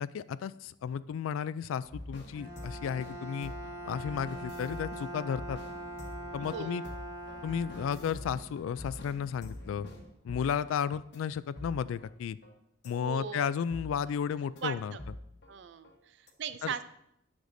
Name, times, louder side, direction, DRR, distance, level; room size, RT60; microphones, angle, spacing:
voice 1, 0.0-3.5 3.9-5.6 6.3-6.8 7.4-9.9 10.2-12.4 12.8-15.0 16.6-16.7, left 7 dB, 85° left, 16 dB, 0.3 m, -33 dB
sound 1, 1.8-10.8 11.1-11.2 11.6-12.1 12.4-12.5 12.8-13.0 13.3-13.4 13.7-14.2 14.6-14.7 15.0-15.5 15.8-16.0 16.3-16.4, left 1 dB, 60° left, 1.0 m, -46 dB
Bowed string instrument, 2.3-8.5, right 1 dB, 20° right, 1.8 m, -43 dB
voice 2, 6.5-6.9 12.9-13.5 14.6-15.0 15.5-16.8, right 7 dB, 60° right, 13 dB, 0.4 m, -39 dB
9.4 x 6.5 x 2.6 m, 0.78 s
head